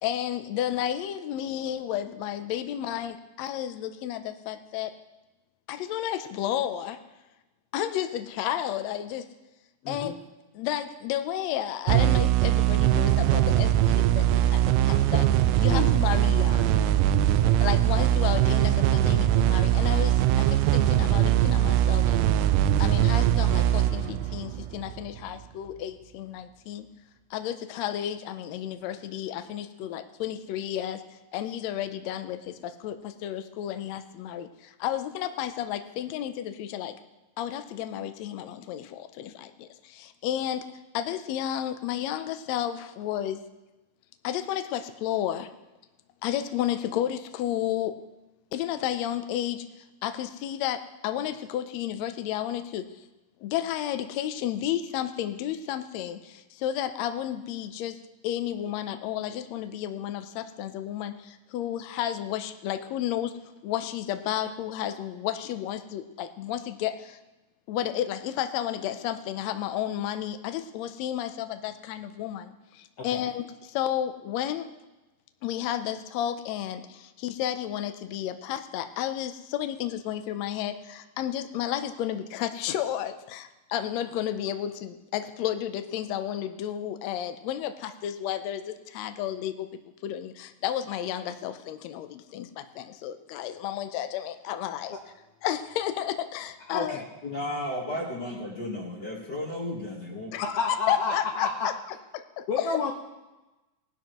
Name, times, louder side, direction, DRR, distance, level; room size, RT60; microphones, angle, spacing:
voice 1, 0.0-4.9 5.7-7.0 7.7-9.2 9.9-10.1 10.5-15.3 15.6-16.8 17.6-22.2 22.8-26.8 27.3-31.0 31.3-36.9 37.4-40.6 40.9-43.4 44.2-45.5 46.2-47.9 48.5-49.6 50.0-52.9 53.4-58.0 58.2-63.3 63.6-67.2 67.7-74.7 75.4-89.7 90.0-94.9 95.4-97.0 100.3-100.5 100.9-101.7 102.1-102.6, left 11 dB, 85° left, 8 dB, 1.5 m, -32 dB
voice 2, 9.8-10.1 15.7-15.9 17.3-17.5 73.0-73.3 96.7-97.1 100.6-101.7 102.5-102.9, left 5 dB, 70° left, 1 dB, 1.4 m, -30 dB
sound 1, 11.9-25.2, right 12 dB, 80° right, 2.0 m, -22 dB
voice 3, 97.2-100.3, left 1 dB, 45° left, -2 dB, 1.4 m, -34 dB
19.0 x 12.0 x 3.0 m, 1.1 s
omnidirectional pair, 4.0 m